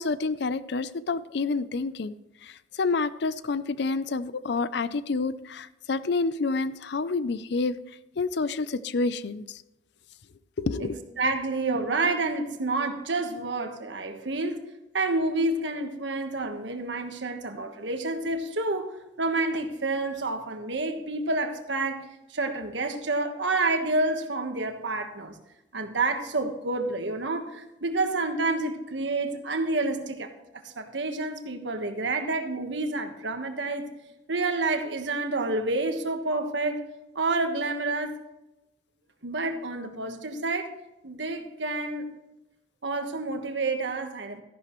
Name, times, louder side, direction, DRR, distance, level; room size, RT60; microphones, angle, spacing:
voice 1, 0.0-2.1 2.4-7.8 8.2-9.6 10.6-10.9, left 3 dB, 65° left, 15 dB, 0.5 m, -28 dB
voice 2, 11.2-14.6 14.9-25.3 25.7-30.3 30.6-33.9 34.3-36.8 37.1-38.1 39.2-40.7 41.0-42.1 42.8-44.4, right 2 dB, 75° right, 6 dB, 1.4 m, -29 dB
13.5 x 11.0 x 3.1 m, 0.95 s
head